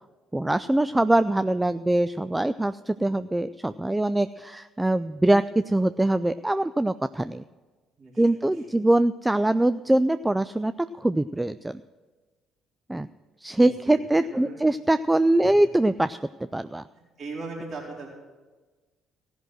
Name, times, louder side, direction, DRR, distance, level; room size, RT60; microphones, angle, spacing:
voice 1, 0.3-7.4 8.2-10.7 11.0-11.8 12.9-13.1 13.4-16.2 16.5-16.8, right 1 dB, 10° right, 13 dB, 0.3 m, -23 dB
voice 2, 8.0-8.6 13.5-13.7 14.0-14.6 15.4-15.6 17.2-18.1, right 3 dB, 50° right, -4 dB, 4.2 m, -39 dB
16.0 x 6.2 x 7.7 m, 1.3 s
hypercardioid pair, 50°, 0 cm